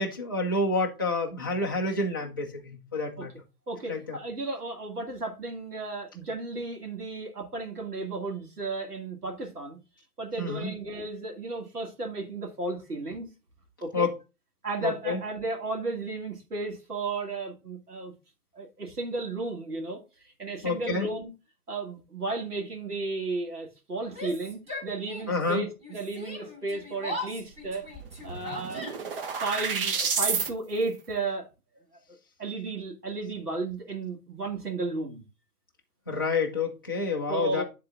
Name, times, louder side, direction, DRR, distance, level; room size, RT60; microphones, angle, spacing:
voice 1, 0.0-3.3 3.9-4.2 10.4-10.7 13.9-14.1 14.8-15.2 20.6-21.1 25.3-25.7 36.1-37.6, left 3 dB, 15° left, 0.4 m, -28 dB
voice 2, 3.7-9.8 10.2-13.3 13.8-14.1 14.6-18.1 18.5-21.3 21.7-27.9 28.2-28.9 29.4-31.5 32.4-35.2 37.3-37.6, right 3 dB, 80° right, 2.2 m, -34 dB
Yell, 24.1-25.5 25.8-29.3, left 1 dB, 15° right, 2.3 m, -39 dB
sound 1, 27.6-27.7 28.0-30.5, right 5 dB, 35° right, 0.9 m, -30 dB
10.0 x 3.8 x 3.4 m
figure-of-eight pair, 130°, 46 cm